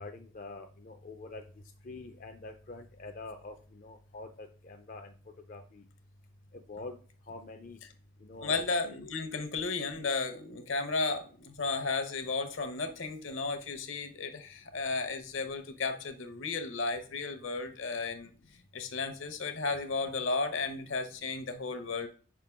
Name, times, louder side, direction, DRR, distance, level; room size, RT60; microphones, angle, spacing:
voice 1, 0.0-1.4 1.8-5.1 5.5-5.8 6.5-7.0 7.3-7.8 8.2-8.6, left 3 dB, 40° left, 5 dB, 0.4 m, -45 dB
voice 2, 8.4-18.3 18.7-22.1, left 3 dB, 70° left, 8 dB, 0.9 m, -34 dB
5.1 x 3.7 x 5.8 m, 0.40 s
head